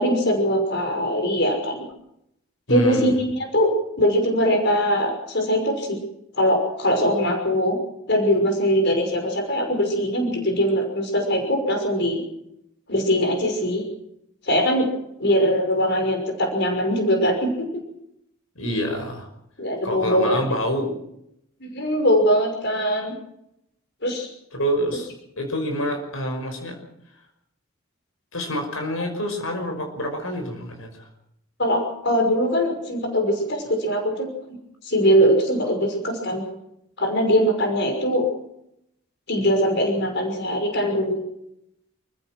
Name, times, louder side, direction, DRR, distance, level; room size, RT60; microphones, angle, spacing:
voice 1, 0.0-1.9 2.7-3.7 4.0-6.0 6.3-7.8 8.1-12.2 12.9-13.8 14.4-14.9 15.2-17.7 19.6-20.4 21.6-23.1 24.0-24.3 31.6-34.3 34.8-36.4 37.0-38.2 39.3-41.2, equal, 55° left, 4 dB, 5.9 m, -21 dB
voice 2, 2.7-3.1 18.6-19.3 19.8-21.0 24.6-25.1 25.4-26.8 28.3-31.1, equal, 80° left, 5 dB, 5.8 m, -27 dB
28.5 x 16.0 x 6.1 m, 0.78 s
head